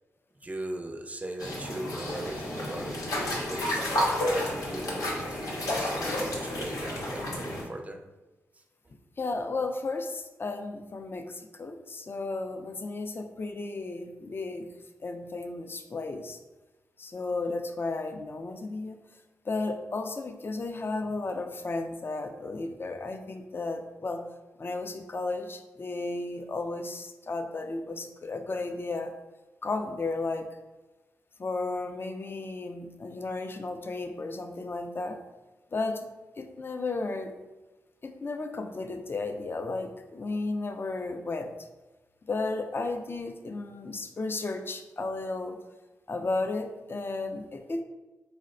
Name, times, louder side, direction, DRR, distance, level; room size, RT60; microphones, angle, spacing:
voice 1, 0.4-3.8 4.3-8.0, right 1 dB, 25° right, 5 dB, 0.5 m, -39 dB
sound 1, 1.4-7.6, left 1 dB, 80° left, 0.7 m, -31 dB
voice 2, 9.2-14.7 15.0-16.4 17.0-19.0 19.4-24.2 24.6-29.1 29.6-30.5 31.4-35.2 35.7-36.1 36.4-37.3 38.0-41.5 42.3-45.6 46.1-47.8, left 3 dB, 40° left, 6 dB, 0.4 m, -34 dB
3.9 x 2.1 x 2.5 m, 1.1 s
supercardioid pair, 45°, 6 cm